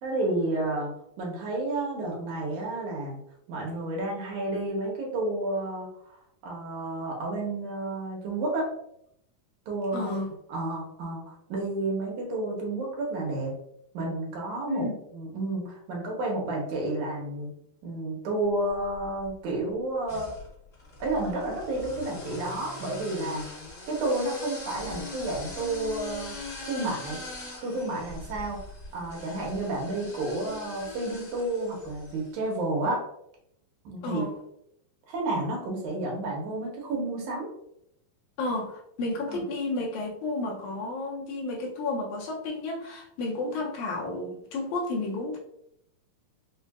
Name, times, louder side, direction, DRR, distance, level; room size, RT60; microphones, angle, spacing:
voice 1, 0.0-0.9 1.2-3.2 3.5-8.7 9.7-10.1 10.5-13.5 13.9-14.9 15.1-17.5 17.8-20.3 21.0-23.4 23.9-26.4 26.7-27.2 27.6-28.6 28.9-33.0 33.9-34.2 35.1-37.5 39.3-39.4 43.5-43.6, right 2 dB, 75° right, -1 dB, 2.2 m, -31 dB
voice 2, 9.9-10.3 14.7-15.0 34.0-34.3 38.4-45.4, left 2 dB, 80° left, -1 dB, 1.8 m, -32 dB
sound 1, 18.7-19.3 20.0-32.3, left 2 dB, 40° left, 1.1 m, -42 dB
5.3 x 2.4 x 2.3 m, 0.76 s
omnidirectional pair, 3.8 m